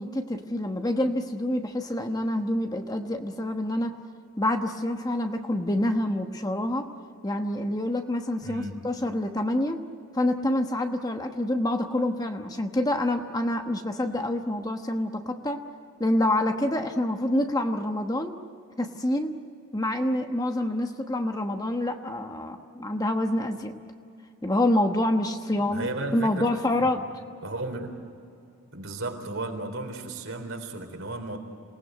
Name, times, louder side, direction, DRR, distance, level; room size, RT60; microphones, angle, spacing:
voice 1, 0.0-4.0 4.4-6.9 7.2-9.8 10.1-15.6 16.0-18.4 18.8-19.3 19.7-23.8 24.4-25.9 26.1-27.0, left 1 dB, 15° left, 5 dB, 1.1 m, -27 dB
voice 2, 8.4-8.8 25.7-26.5 26.8-26.9 27.4-28.0 28.7-31.4, right 2 dB, 60° right, 4 dB, 3.9 m, -34 dB
27.5 x 19.0 x 9.3 m, 2.6 s
head